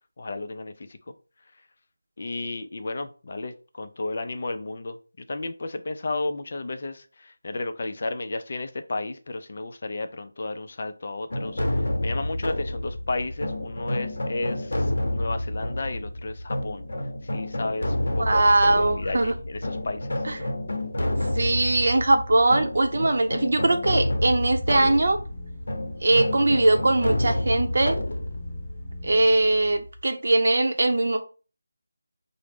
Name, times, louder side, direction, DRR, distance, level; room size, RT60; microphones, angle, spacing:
voice 1, 0.2-1.1 2.2-14.9 15.1-16.9 17.3-18.5 18.8-20.2, left 2 dB, 45° left, 8 dB, 0.4 m, -33 dB
sound 1, 11.3-30.0, left 1 dB, 65° left, 0.8 m, -29 dB
voice 2, 18.2-19.3 20.2-20.4 21.4-25.2 26.0-28.0 29.0-31.2, right 2 dB, 55° right, 5 dB, 0.6 m, -21 dB
sound 2, 23.4-29.4, left 1 dB, 5° right, 0.6 m, -40 dB
4.6 x 2.0 x 3.4 m, 0.36 s
figure-of-eight pair, 165°, 0 cm